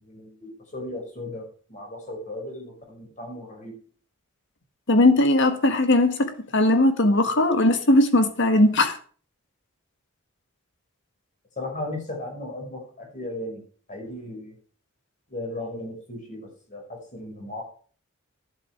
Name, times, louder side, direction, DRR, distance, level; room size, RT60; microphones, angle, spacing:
voice 1, 0.0-1.4 1.7-3.8 11.6-13.6 13.9-14.5 15.3-17.7, left 1 dB, 40° left, 5.5 m, -36 dB
voice 2, 4.9-9.0, left 1 dB, 60° left, 1.8 m, -19 dB
11.0 x 7.9 x 6.3 m
head